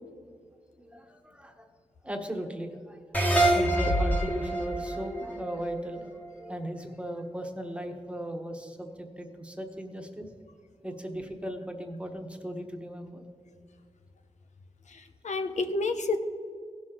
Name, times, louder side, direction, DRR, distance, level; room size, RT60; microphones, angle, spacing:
voice 1, 0.8-1.7 2.0-3.0 3.5-10.3 10.8-13.2, right 1 dB, 10° right, 4 dB, 1.3 m, -37 dB
sound 1, 3.1-6.5, right 1 dB, 15° left, 1.5 m, -26 dB
voice 2, 14.9-16.2, left 3 dB, 75° left, 7 dB, 0.8 m, -30 dB
16.5 x 6.3 x 3.9 m, 2.3 s
cardioid pair, 65°, 12 cm